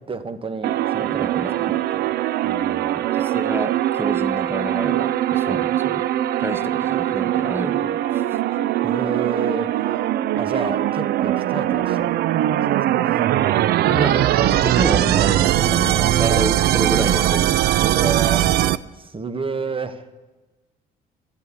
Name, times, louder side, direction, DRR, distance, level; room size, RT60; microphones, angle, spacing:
voice 1, 0.0-2.1 2.4-3.0 5.4-5.7 8.8-9.8 10.3-12.2 12.4-13.1 15.9-16.2 17.8-18.5 18.9-20.0, right 4 dB, 30° right, 11 dB, 1.3 m, -30 dB
sound 1, 0.6-18.8, right 13 dB, 70° right, 0.5 m, -21 dB
voice 2, 1.1-1.8 2.9-6.0 6.4-8.4 13.8-18.1, right 1 dB, 15° right, 13 dB, 1.0 m, -29 dB
sound 2, 13.8-19.1, right 1 dB, 85° right, 5.6 m, -48 dB
12.0 x 9.1 x 9.9 m, 1.2 s
supercardioid pair, 65°, 17 cm